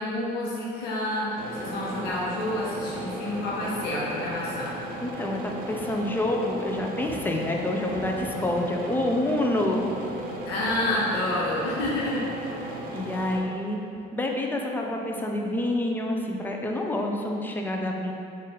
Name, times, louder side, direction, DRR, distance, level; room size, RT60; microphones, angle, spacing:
voice 1, 0.0-4.8 10.5-12.2, left 1 dB, 85° left, -6 dB, 0.9 m, -29 dB
sound 1, 1.4-13.4, right 1 dB, 60° right, 0.5 m, -36 dB
voice 2, 5.0-9.9 12.9-13.8 14.1-18.1, left 1 dB, 10° left, 1 dB, 0.4 m, -27 dB
sound 2, 6.7-7.3 7.9-9.2 9.7-9.8 10.7-11.0 11.8-12.1, left 1 dB, 35° right, 1.3 m, -44 dB
4.0 x 2.5 x 3.7 m, 2.6 s
cardioid pair, 110°, 17 cm